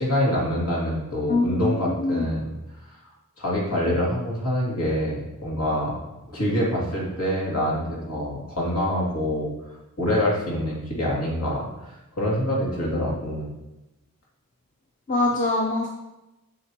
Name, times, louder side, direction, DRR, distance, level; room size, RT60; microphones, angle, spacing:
voice 1, 0.0-2.5 3.4-5.9 6.3-9.5 10.0-11.7 12.1-13.5, equal, 80° left, -4 dB, 2.5 m, -25 dB
voice 2, 1.3-2.3 15.1-15.9, left 2 dB, 35° left, 0 dB, 0.6 m, -24 dB
8.4 x 6.7 x 2.9 m, 0.98 s
head